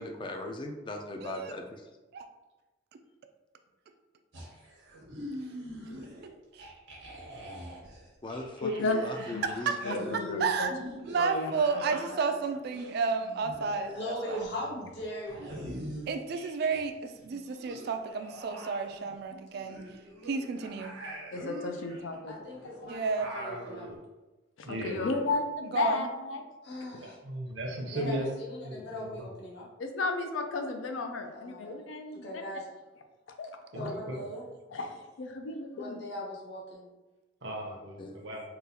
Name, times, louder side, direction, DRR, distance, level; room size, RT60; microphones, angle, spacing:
voice 1, 0.0-1.8 8.2-10.4 24.7-24.9 38.0-38.2, left 2 dB, 25° left, 3 dB, 0.3 m, -39 dB
voice 2, 1.2-1.5 2.1-2.3 6.2-6.6 9.7-9.8 10.1-10.7 11.0-14.4 16.1-19.8 20.3-21.0 22.9-23.3 25.7-26.1, right 5 dB, 55° right, 7 dB, 0.3 m, -31 dB
sound 1, 4.3-6.3 6.6-16.8 17.1-24.0, equal, 90° right, 1.1 m, -44 dB
voice 3, 8.6-9.4 9.8-10.7 11.2-11.8 21.3-22.3 24.7-26.4 29.8-32.3 33.4-33.5 33.7-33.9 34.7-34.9 35.2-36.0, left 3 dB, 90° left, 5 dB, 0.4 m, -33 dB
voice 4, 13.8-15.7 22.2-23.9 26.6-27.2 27.9-29.7 31.3-31.8 32.2-32.7 33.8-34.4 35.7-36.9, left 1 dB, 60° left, -4 dB, 0.8 m, -39 dB
voice 5, 24.6-25.1 27.0-28.3 28.6-29.2 33.7-34.2 37.4-38.4, right 1 dB, 70° right, 0 dB, 0.7 m, -37 dB
3.7 x 2.3 x 2.8 m, 1.1 s
head